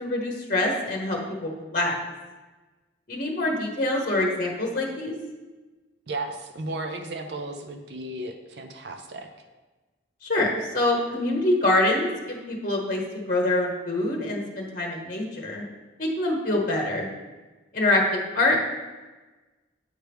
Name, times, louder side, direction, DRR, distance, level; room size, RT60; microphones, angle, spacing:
voice 1, 0.0-1.9 3.1-5.1 10.2-13.0 13.3-15.6 16.0-17.1 17.7-18.6, left 2 dB, 45° left, 0 dB, 0.9 m, -25 dB
voice 2, 6.1-9.3, right 2 dB, 60° right, 6 dB, 0.6 m, -34 dB
8.1 x 4.6 x 3.4 m, 1.2 s
head